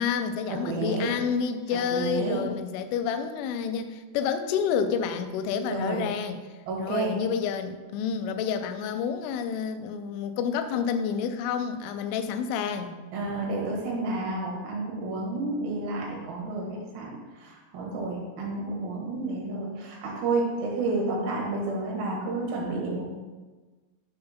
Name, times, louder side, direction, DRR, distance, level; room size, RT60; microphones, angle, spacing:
voice 1, 0.0-6.4 6.8-12.9, left 7 dB, 90° left, 8 dB, 3.0 m, -29 dB
voice 2, 0.6-1.2 1.7-2.4 5.7-6.0 6.7-7.1 13.1-23.0, right 3 dB, 65° right, -2 dB, 2.7 m, -30 dB
6.8 x 3.4 x 5.7 m, 1.3 s
omnidirectional pair, 5.4 m